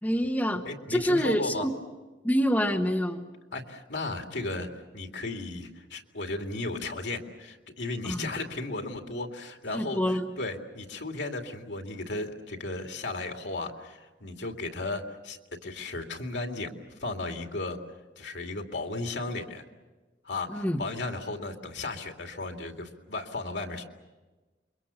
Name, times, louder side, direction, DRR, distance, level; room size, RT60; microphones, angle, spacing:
voice 1, 0.0-0.6 0.9-1.7 2.2-3.2 8.0-8.3 9.7-10.3 20.5-20.8, equal, 10° left, 3 dB, 1.3 m, -26 dB
voice 2, 0.6-1.7 3.5-4.7 4.9-16.7 17.0-17.8 18.2-19.6 20.2-23.8, left 2 dB, 80° left, 3 dB, 2.5 m, -35 dB
28.5 x 23.5 x 7.1 m, 1.2 s
head